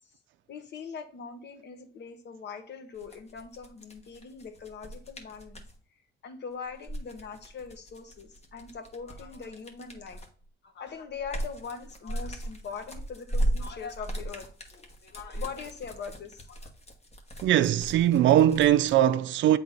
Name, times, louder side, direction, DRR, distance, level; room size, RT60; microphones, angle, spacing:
voice 1, 0.5-5.6 6.2-10.2 10.6-16.7, left 6 dB, 60° left, 1.3 m, -41 dB
sound 1, 2.9-5.7 6.7-10.4 10.9-18.9, right 1 dB, 30° left, 1.5 m, -36 dB
voice 2, 17.4-19.6, right 12 dB, 70° right, 0.4 m, -21 dB
8.3 x 3.8 x 3.9 m
cardioid pair, 90°, 20 cm